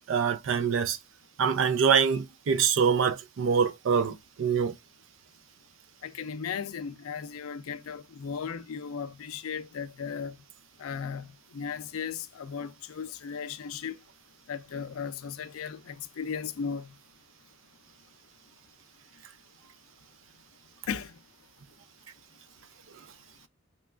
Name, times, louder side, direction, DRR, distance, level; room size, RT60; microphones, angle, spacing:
voice 1, 0.1-1.0 1.4-4.8, right 6 dB, 65° right, 0.4 m, -25 dB
voice 2, 6.0-10.4 10.8-14.0 14.5-16.9 20.9-21.1, left 6 dB, 85° left, 0.4 m, -36 dB
3.0 x 2.3 x 2.3 m
head